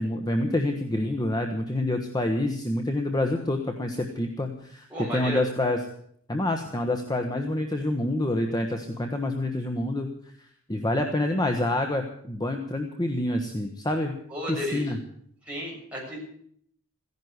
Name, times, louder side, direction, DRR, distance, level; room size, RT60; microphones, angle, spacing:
voice 1, 0.0-4.9 5.1-5.8 6.3-10.1 10.7-14.1 14.5-15.0, left 1 dB, 20° left, 4 dB, 1.2 m, -27 dB
voice 2, 4.9-5.4 14.3-14.9 15.5-16.2, left 1 dB, 5° right, -4 dB, 7.5 m, -33 dB
15.5 x 10.5 x 8.0 m, 0.65 s
head